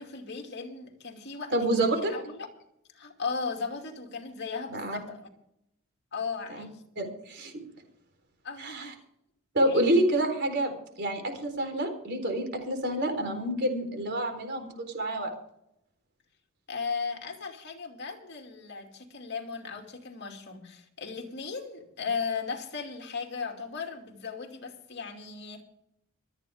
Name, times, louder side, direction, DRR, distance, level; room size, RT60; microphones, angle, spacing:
voice 1, 0.0-2.5 2.9-5.3 6.1-6.8 8.4-8.9 9.7-9.9 16.7-25.6, left 5 dB, 55° left, 3 dB, 2.5 m, -36 dB
voice 2, 1.5-2.1 4.7-5.0 6.5-6.6 7.0-7.5 8.6-8.9 9.5-10.7 11.0-14.7 14.9-15.3, right 1 dB, 50° right, 5 dB, 4.1 m, -28 dB
26.0 x 9.0 x 3.6 m, 0.77 s
head